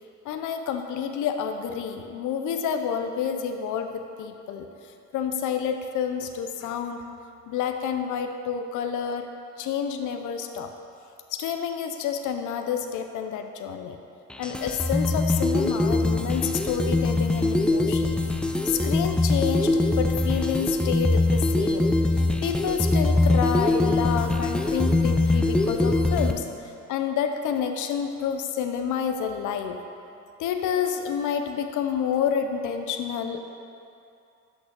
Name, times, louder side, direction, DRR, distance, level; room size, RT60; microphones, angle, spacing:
voice 1, 0.2-7.0 7.5-9.3 9.6-10.7 11.3-14.0 14.4-18.1 18.6-29.8 30.4-33.4, left 7 dB, 80° left, 6 dB, 0.6 m, -29 dB
sound 1, 14.3-26.3, left 2 dB, 5° left, 0.5 m, -23 dB
6.2 x 5.9 x 6.6 m, 2.6 s
cardioid pair, 90°, 30 cm